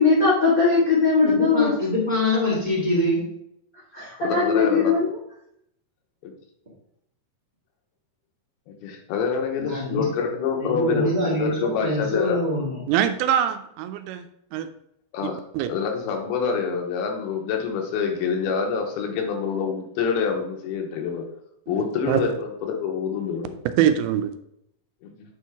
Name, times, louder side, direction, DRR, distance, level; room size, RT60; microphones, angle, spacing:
voice 1, 0.0-1.7 3.9-5.1, left 4 dB, 45° left, -7 dB, 1.1 m, -19 dB
voice 2, 1.2-3.2 9.6-10.0 10.6-12.8, left 1 dB, 20° right, -6 dB, 1.2 m, -24 dB
voice 3, 4.2-4.9 8.7-12.4 15.1-15.4 15.7-21.3 21.7-23.5 25.0-25.1, left 6 dB, 90° left, 3 dB, 2.9 m, -26 dB
voice 4, 12.9-14.3 14.5-14.7 15.2-15.7 21.7-22.2 23.8-24.3, right 10 dB, 85° right, 9 dB, 2.5 m, -23 dB
8.9 x 4.7 x 3.5 m, 0.75 s
omnidirectional pair, 4.5 m